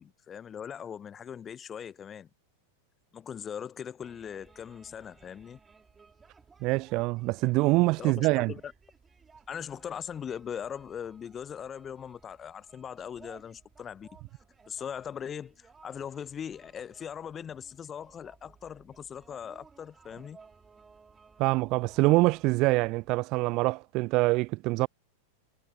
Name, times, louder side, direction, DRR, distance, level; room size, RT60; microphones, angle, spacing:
voice 1, 0.0-2.3 3.1-5.6 8.0-8.7 9.5-14.1 14.7-20.4, left 8 dB, 25° left, 1.0 m, -40 dB
sound 1, 4.0-23.1, right 5 dB, 15° right, 3.6 m, -59 dB
voice 2, 6.6-8.5 21.4-24.9, right 22 dB, 40° right, 0.4 m, -25 dB
figure-of-eight pair, 90°, 0 cm